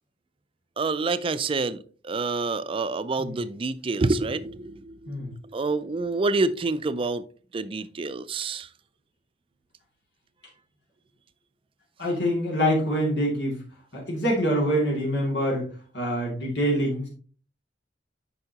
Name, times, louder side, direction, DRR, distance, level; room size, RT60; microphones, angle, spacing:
voice 1, 0.8-1.8 2.0-7.2 7.5-8.7, right 3 dB, 30° right, 0.4 m, -27 dB
voice 2, 12.0-13.6 13.9-15.7 15.9-17.1, equal, 85° left, 2.5 m, -25 dB
8.0 x 5.6 x 2.9 m
head